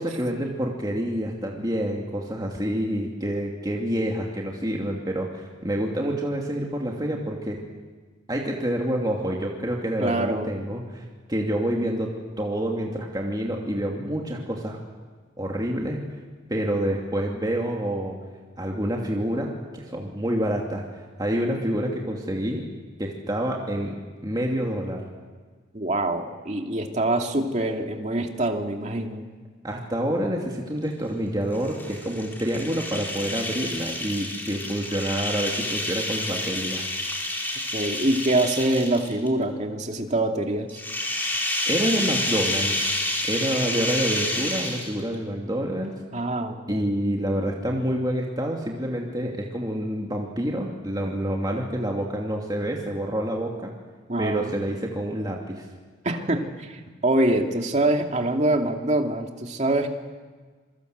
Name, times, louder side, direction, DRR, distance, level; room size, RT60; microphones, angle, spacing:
voice 1, 0.0-7.6 8.3-11.0 11.3-14.8 15.4-16.0 16.5-18.2 18.6-22.7 23.0-24.0 24.2-25.0 29.6-36.9 41.7-42.9 43.2-45.9 46.7-53.7 54.2-55.6, right 1 dB, 20° right, -1 dB, 2.7 m, -27 dB
voice 2, 10.0-10.5 25.7-29.3 37.7-40.8 46.1-46.9 54.1-54.6 56.0-59.9, right 1 dB, 35° right, 3 dB, 2.5 m, -25 dB
sound 1, 31.5-39.3 40.7-45.2, left 1 dB, 10° left, 4.1 m, -29 dB
27.5 x 24.0 x 8.1 m, 1.4 s
head